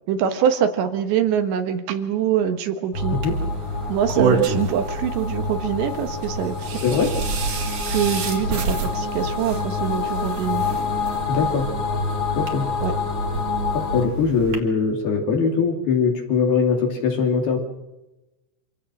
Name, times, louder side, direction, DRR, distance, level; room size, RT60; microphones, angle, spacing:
voice 1, 0.1-3.2 3.9-6.8 7.6-10.7 12.8-12.9, right 9 dB, 70° right, 7 dB, 3.5 m, -24 dB
sound 1, 2.9-14.1, left 4 dB, 35° left, 3.7 m, -28 dB
sound 2, 3.2-14.6, right 4 dB, 45° right, 3.7 m, -28 dB
voice 2, 6.8-7.1 11.3-11.7 12.4-12.7 13.7-17.6, left 5 dB, 55° left, 2 dB, 4.6 m, -21 dB
26.5 x 16.5 x 6.4 m, 0.98 s
omnidirectional pair, 5.5 m